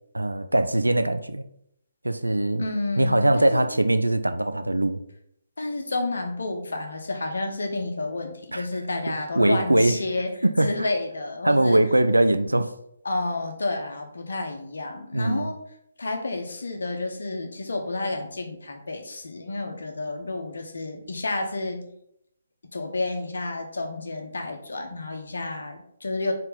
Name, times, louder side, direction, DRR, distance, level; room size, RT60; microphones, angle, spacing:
voice 1, 0.1-1.4 2.0-2.6 3.0-5.0 8.5-8.7 9.4-10.0 10.4-10.9 11.4-12.7 15.1-15.5, right 1 dB, 80° right, 10 dB, 0.5 m, -21 dB
voice 2, 2.6-3.6 5.6-10.3 10.6-11.8 13.0-15.6 16.0-21.9 22.7-26.3, left 2 dB, 60° left, 5 dB, 1.1 m, -30 dB
4.5 x 3.8 x 5.4 m, 0.73 s
figure-of-eight pair, 135°, 0 cm